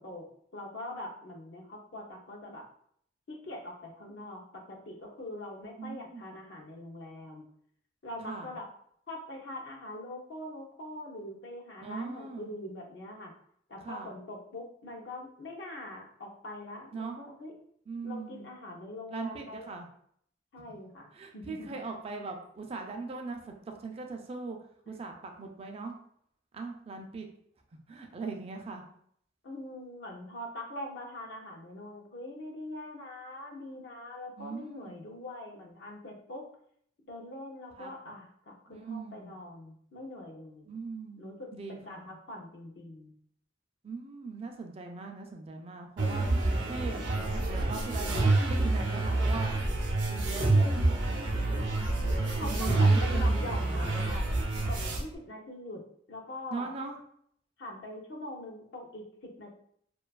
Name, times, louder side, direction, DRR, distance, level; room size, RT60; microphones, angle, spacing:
voice 1, 0.0-2.7 3.3-7.5 8.0-8.7 9.1-13.3 13.7-17.5 18.0-19.7 20.5-21.7 29.4-36.5 37.1-40.8 41.2-43.1 52.3-54.3 54.7-56.7 57.6-59.5, left 1 dB, 70° left, 0 dB, 0.5 m, -43 dB
voice 2, 5.8-6.2 8.3-8.5 11.8-12.5 13.8-14.1 16.9-17.2 17.9-18.5 19.1-19.9 21.1-24.6 24.9-25.9 26.5-27.3 27.9-28.8 34.4-35.0 37.8-37.9 38.7-39.3 40.7-42.1 43.8-46.3 46.6-49.5 50.1-50.5 52.5-53.9 56.5-57.0, right 4 dB, 35° right, 3 dB, 0.3 m, -40 dB
sound 1, 46.0-55.0, right 2 dB, 85° right, 0.5 m, -27 dB
2.6 x 2.3 x 2.2 m, 0.65 s
head